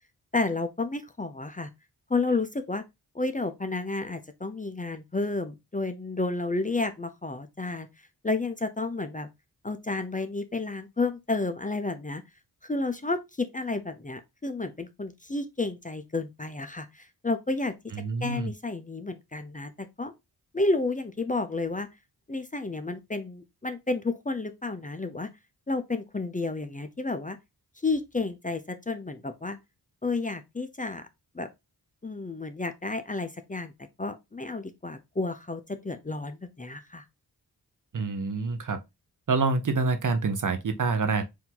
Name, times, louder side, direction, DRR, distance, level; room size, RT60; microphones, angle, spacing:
voice 1, 0.3-1.7 2.1-2.8 3.1-7.9 8.2-9.3 9.6-12.2 12.6-17.8 18.2-20.1 20.5-21.9 22.3-25.3 25.7-27.4 27.8-29.6 30.0-31.1 31.3-31.5 32.0-33.7 34.0-37.0, left 3 dB, 20° left, 0.6 m, -31 dB
voice 2, 17.9-18.5 37.9-38.8 39.3-41.2, right 4 dB, 50° right, 0.8 m, -27 dB
4.6 x 2.7 x 3.8 m
cardioid pair, 65°, 40 cm